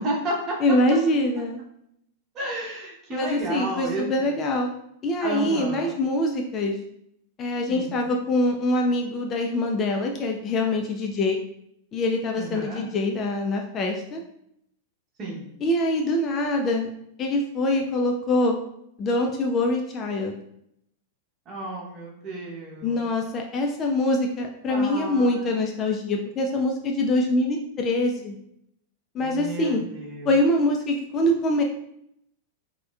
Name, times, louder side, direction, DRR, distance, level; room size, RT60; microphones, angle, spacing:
voice 1, 0.0-0.6 2.3-4.1 5.2-5.9 7.7-8.2 12.4-12.9 15.2-15.5 21.5-23.1 24.7-25.5 29.2-30.3, right 2 dB, 30° right, -3 dB, 0.9 m, -32 dB
voice 2, 0.6-1.6 3.1-4.7 5.0-6.7 7.4-11.4 11.9-14.2 15.6-16.9 17.2-18.6 19.0-20.4 22.8-28.4 29.1-29.8 30.2-31.6, left 1 dB, 30° left, 2 dB, 0.3 m, -24 dB
3.4 x 2.1 x 2.3 m, 0.75 s
figure-of-eight pair, 95°, 0 cm